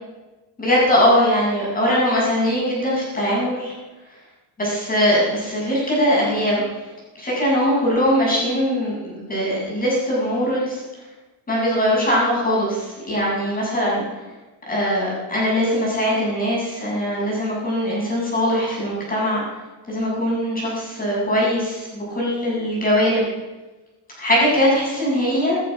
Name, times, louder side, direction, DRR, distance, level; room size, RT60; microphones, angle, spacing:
voice 1, 0.6-3.7 4.6-6.6 7.2-10.8 11.5-14.0 14.7-19.4 19.9-23.3 24.2-25.6, equal, 20° left, -4 dB, 7.4 m, -21 dB
17.0 x 14.0 x 6.0 m, 1.1 s
cardioid pair, 175°, 44 cm